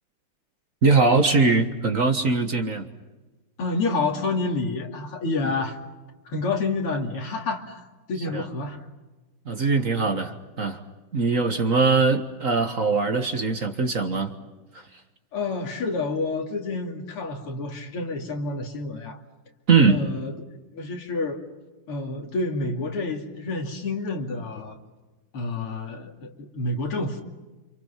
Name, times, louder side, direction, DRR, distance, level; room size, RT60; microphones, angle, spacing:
voice 1, 0.8-2.8 8.3-8.4 9.5-10.8 11.1-14.3 19.7-20.0, right 4 dB, 40° right, 5 dB, 1.8 m, -21 dB
voice 2, 3.6-5.8 6.3-8.9 15.3-19.2 19.9-20.3 20.7-21.4 21.9-24.8 25.3-27.2, left 3 dB, 80° left, 2 dB, 3.6 m, -29 dB
29.5 x 27.0 x 5.9 m, 1.2 s
omnidirectional pair, 2.4 m